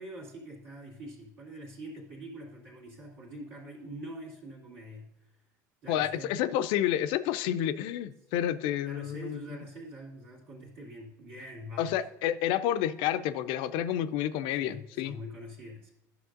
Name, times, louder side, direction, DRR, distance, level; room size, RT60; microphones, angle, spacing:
voice 1, 0.0-5.1 5.8-6.3 8.8-12.0 14.6-15.9, right 1 dB, 75° right, -8 dB, 2.3 m, -44 dB
voice 2, 5.9-9.4 11.8-15.2, left 11 dB, 65° left, 13 dB, 0.4 m, -29 dB
11.0 x 6.5 x 2.5 m, 0.98 s
hypercardioid pair, 75°, 9 cm